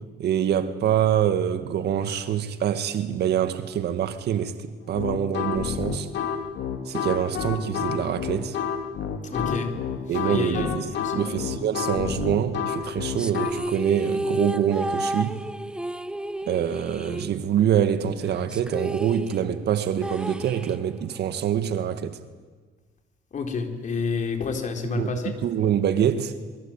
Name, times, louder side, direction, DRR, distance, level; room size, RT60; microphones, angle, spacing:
voice 1, 0.2-6.1 6.9-8.6 10.1-15.4 16.5-22.2 24.9-26.4, right 9 dB, 65° right, 2.0 m, -25 dB
sound 1, 4.9-13.5, left 7 dB, 70° left, 3.0 m, -29 dB
voice 2, 9.2-9.7 10.1-11.4 23.3-25.3, left 4 dB, 40° left, 4.3 m, -29 dB
sound 2, 13.2-17.8 18.1-18.2 18.5-21.2, right 1 dB, 5° right, 0.8 m, -32 dB
27.0 x 23.5 x 9.0 m
cardioid pair, 120°, 19 cm